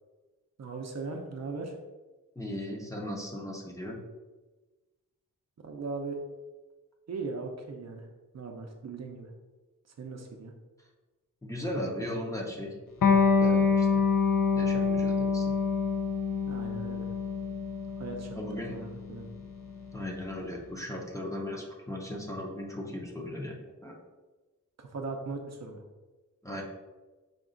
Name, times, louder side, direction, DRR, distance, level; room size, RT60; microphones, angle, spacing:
voice 1, 0.6-1.8 5.6-6.2 7.1-8.1 8.3-9.3 10.0-10.5 16.5-17.1 18.0-18.4 18.7-19.3 24.8-25.8, right 4 dB, 50° right, 3 dB, 0.5 m, -38 dB
voice 2, 2.4-4.0 11.4-12.7 13.4-14.0 14.6-15.5 18.3-18.8 19.9-24.0 26.4-26.6, left 1 dB, 10° left, -2 dB, 0.5 m, -37 dB
Electric guitar, 13.0-20.2, left 5 dB, 85° left, 0.6 m, -26 dB
5.1 x 2.3 x 3.7 m, 1.2 s
wide cardioid pair, 175°, 33 cm